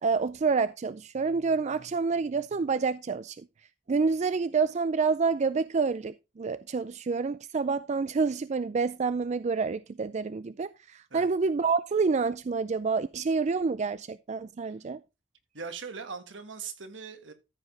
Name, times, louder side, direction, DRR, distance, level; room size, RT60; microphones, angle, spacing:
voice 1, 0.0-3.5 3.9-15.0, right 4 dB, 40° right, 0.4 m, -28 dB
voice 2, 15.5-17.3, right 5 dB, 80° right, 1.6 m, -40 dB
14.0 x 5.0 x 3.9 m
head